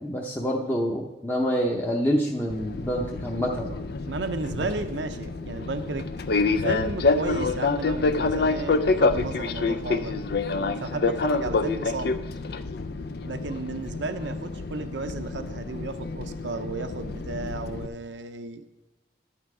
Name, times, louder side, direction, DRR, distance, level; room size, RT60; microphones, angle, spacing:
voice 1, 0.0-3.7, equal, 10° left, -3 dB, 0.8 m, -27 dB
Fixed-wing aircraft airplane, 2.5-17.9, left 3 dB, 60° left, 0.5 m, -27 dB
voice 2, 4.0-6.1 6.6-10.2 10.5-12.2 13.2-18.6, right 3 dB, 85° right, 8 dB, 0.7 m, -33 dB
12.0 x 8.8 x 4.8 m, 1.1 s
head